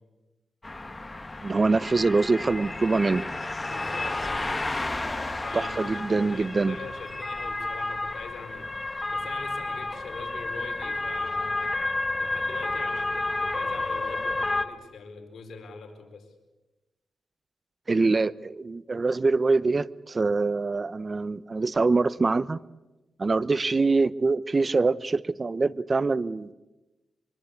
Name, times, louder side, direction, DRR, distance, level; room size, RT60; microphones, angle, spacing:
sound 1, 0.6-14.7, left 2 dB, 25° left, 1.8 m, -31 dB
voice 1, 1.4-3.2 5.5-6.8 17.9-22.6 23.2-26.5, right 3 dB, 35° right, 18 dB, 0.9 m, -24 dB
voice 2, 3.7-4.5 5.4-8.7 9.1-11.9 12.2-16.3, left 4 dB, 70° left, 4 dB, 4.8 m, -43 dB
24.0 x 23.0 x 8.4 m, 1.1 s
cardioid pair, 65°, 0 cm